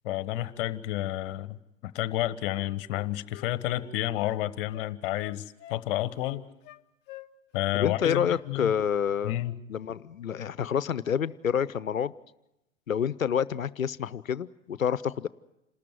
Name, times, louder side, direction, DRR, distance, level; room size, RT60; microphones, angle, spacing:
voice 1, 0.0-5.4 5.7-6.4 7.5-8.7 9.2-9.6, left 14 dB, 45° left, 15 dB, 1.3 m, -30 dB
Wind instrument woodwind instrument, 2.5-4.4 4.7-5.8 6.2-6.8 7.1-7.7 8.0-8.2 8.5-9.1 9.4-9.6, left 15 dB, 25° left, 0.9 m, -48 dB
voice 2, 7.7-9.4 9.7-12.1 12.9-15.3, left 8 dB, 90° left, 18 dB, 0.7 m, -28 dB
28.0 x 13.5 x 9.1 m, 0.90 s
hypercardioid pair, 110°, 39 cm